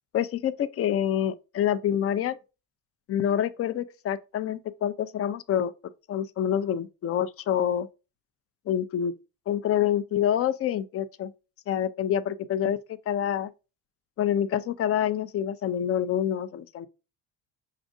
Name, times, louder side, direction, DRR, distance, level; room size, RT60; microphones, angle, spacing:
voice 1, 0.1-2.4 3.1-5.7 6.1-7.9 8.7-9.1 9.5-11.3 11.7-12.8 13.1-13.5 14.2-16.9, left 10 dB, 30° left, 0.4 m, -27 dB
6.3 x 2.5 x 2.4 m
hypercardioid pair, 65°, 47 cm